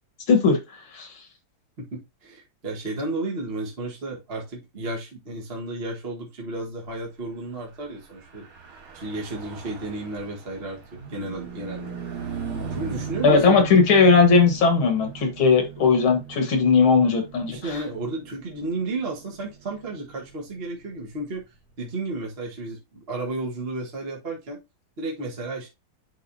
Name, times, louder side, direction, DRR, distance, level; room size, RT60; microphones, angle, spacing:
voice 1, 0.3-0.6 0.9-1.1 13.2-17.8, left 4 dB, 75° left, 2.4 m, -18 dB
voice 2, 1.8-8.5 8.9-12.0 12.7-13.6 17.5-21.4 21.8-24.6 25.0-25.7, right 2 dB, 30° right, 1.6 m, -33 dB
Car passing by / Truck, 8.2-21.9, right 6 dB, 85° right, 3.5 m, -39 dB
11.0 x 4.0 x 2.7 m
omnidirectional pair, 2.3 m